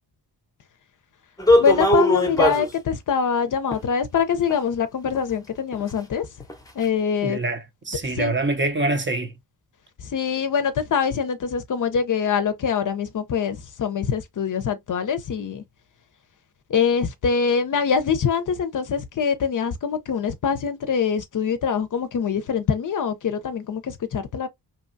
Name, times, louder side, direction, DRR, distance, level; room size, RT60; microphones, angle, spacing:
sound 1, 1.4-2.7 3.7-3.8 4.5-4.6 5.1-5.2 5.7-5.8 6.4-6.5 6.8-6.9, equal, 10° left, 0.7 m, -19 dB
voice 1, 1.6-6.3 6.7-7.4 8.1-8.3 10.0-15.6 16.7-24.5, left 6 dB, 50° left, 0.6 m, -24 dB
voice 2, 7.2-9.3, right 2 dB, 30° right, 0.6 m, -25 dB
2.9 x 2.2 x 2.5 m
cardioid pair, 85°, 40 cm